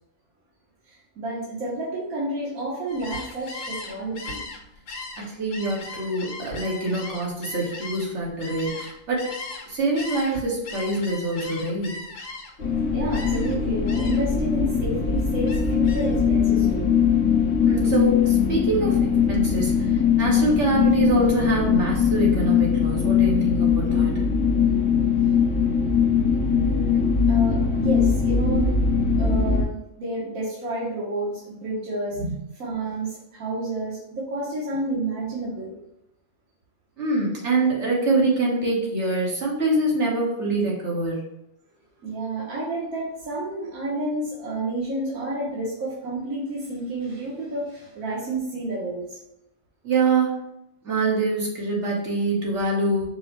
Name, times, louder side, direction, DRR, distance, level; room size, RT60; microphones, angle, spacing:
voice 1, 0.9-4.4 12.9-16.9 26.5-27.0 27.3-28.7 29.2-32.2 32.6-35.7 42.0-49.2, right 2 dB, 80° right, -7 dB, 1.5 m, -30 dB
Gull seagull, 2.9-9.7 9.9-12.7 13.1-13.6 13.9-14.3 14.7-16.2, left 3 dB, 85° left, 1.2 m, -38 dB
voice 2, 5.2-9.3 9.7-12.0 17.7-24.2 32.1-32.4 37.0-41.4 49.8-50.4 50.8-53.1, right 2 dB, 55° right, -3 dB, 1.5 m, -25 dB
sound 1, 12.6-29.6, left 6 dB, 55° left, 1.0 m, -21 dB
5.3 x 2.1 x 4.4 m, 0.84 s
omnidirectional pair, 1.4 m